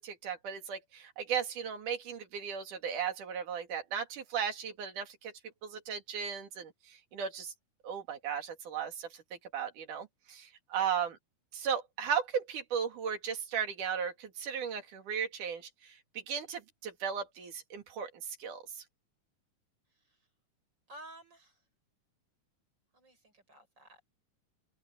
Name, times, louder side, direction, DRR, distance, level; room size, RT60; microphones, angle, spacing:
voice 1, 0.0-5.3 5.6-7.5 7.8-9.2 9.5-11.2 11.5-18.6, right 7 dB, 85° right, 3.9 m, -36 dB
voice 2, 20.9-21.6 22.9-24.0, right 1 dB, 35° right, 7.7 m, -53 dB
omnidirectional pair, 3.5 m